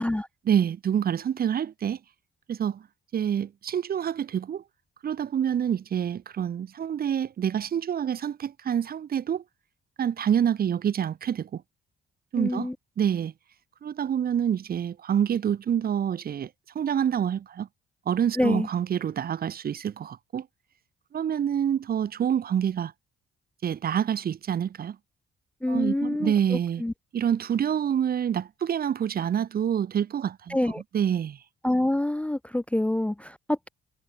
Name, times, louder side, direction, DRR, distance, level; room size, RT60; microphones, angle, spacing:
voice 1, 0.5-2.0 2.5-2.8 3.1-4.6 5.0-9.4 10.0-11.6 12.3-12.7 13.0-13.3 13.8-16.5 16.7-17.7 18.1-20.5 21.1-22.9 23.6-25.0 25.7-26.8 27.1-30.6 30.9-31.4, right 9 dB, 50° right, 0.9 m, -27 dB
voice 2, 12.4-12.8 18.4-18.7 25.6-26.9 30.5-30.8 31.6-33.7, left 1 dB, 5° left, 0.4 m, -26 dB
cardioid pair, 90°, 20 cm